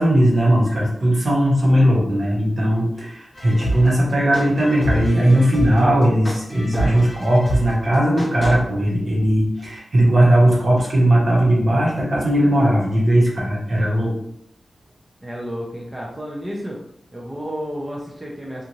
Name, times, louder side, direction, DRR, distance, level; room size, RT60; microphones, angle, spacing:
voice 1, 0.0-14.1, right 1 dB, 50° right, -4 dB, 1.1 m, -18 dB
sound 1, 3.4-8.6, equal, 40° left, 0.8 m, -27 dB
voice 2, 15.2-16.8 17.1-18.6, equal, 15° right, -4 dB, 0.5 m, -31 dB
2.6 x 2.5 x 3.0 m, 0.73 s
wide cardioid pair, 100°, 0 cm